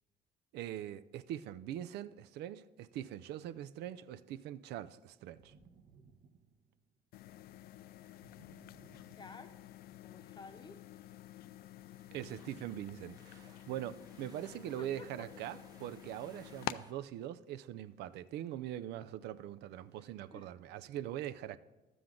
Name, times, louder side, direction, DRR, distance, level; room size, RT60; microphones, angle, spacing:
voice 1, 0.5-5.5 12.1-21.6, right 12 dB, 80° right, 0.4 m, -42 dB
sound 1, 5.3-7.1 8.2-9.9, right 5 dB, 60° right, 1.0 m, -63 dB
sound 2, 7.1-16.8, left 13 dB, 65° left, 0.4 m, -49 dB
voice 2, 9.2-9.6 10.0-10.9 14.8-15.3 20.3-20.5 20.9-21.0, left 4 dB, 25° left, 0.8 m, -52 dB
sound 3, 11.9-16.9, right 3 dB, 25° right, 0.8 m, -64 dB
11.5 x 7.8 x 3.8 m
cardioid pair, 110°, 17 cm